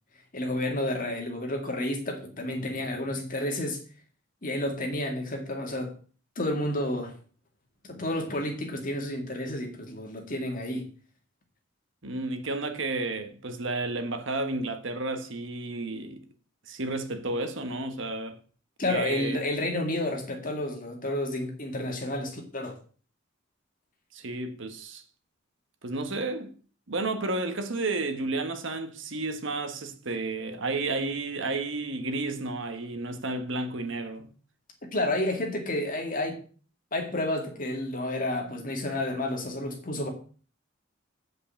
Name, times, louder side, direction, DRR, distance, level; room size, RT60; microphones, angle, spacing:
voice 1, 0.3-3.8 4.4-5.9 6.4-7.1 7.9-10.9 18.8-22.8 34.9-36.4 36.9-40.1, left 1 dB, 40° left, 2.1 m, -30 dB
voice 2, 12.0-16.2 16.7-18.4 18.9-19.4 24.1-25.0 25.8-26.5 26.9-34.3, right 2 dB, 60° right, 1.3 m, -32 dB
8.0 x 5.5 x 7.1 m
head